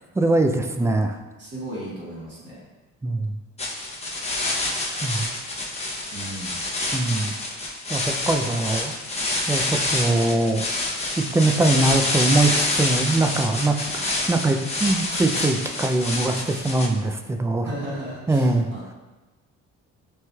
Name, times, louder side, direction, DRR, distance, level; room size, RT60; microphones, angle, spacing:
voice 1, 0.2-1.2 3.0-3.3 5.0-5.3 6.9-7.3 7.9-9.0 9.5-10.7 11.2-13.8 14.3-17.7 18.3-18.7, right 2 dB, 10° right, 6 dB, 0.3 m, -22 dB
voice 2, 1.4-2.6 6.1-6.6 13.8-14.0 17.6-18.8, right 1 dB, 40° right, -8 dB, 1.5 m, -35 dB
sound 1, 3.6-16.9, left 2 dB, 20° left, 0.7 m, -27 dB
5.9 x 3.1 x 2.3 m, 1.2 s
cardioid pair, 90°, 30 cm